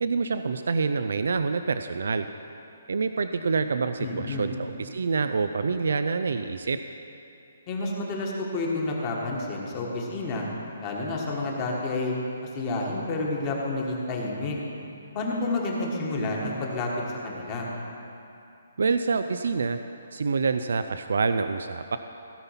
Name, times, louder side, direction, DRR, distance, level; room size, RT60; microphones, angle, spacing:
voice 1, 0.0-2.3 2.9-6.8 18.8-19.8 20.1-22.0, right 4 dB, 75° right, 9 dB, 0.4 m, -26 dB
voice 2, 4.0-4.5 7.7-10.5 10.8-12.1 12.4-14.6 15.1-16.9 17.2-17.7, left 2 dB, 25° left, -2 dB, 1.5 m, -29 dB
16.0 x 5.7 x 5.7 m, 2.7 s
hypercardioid pair, 165°, 0 cm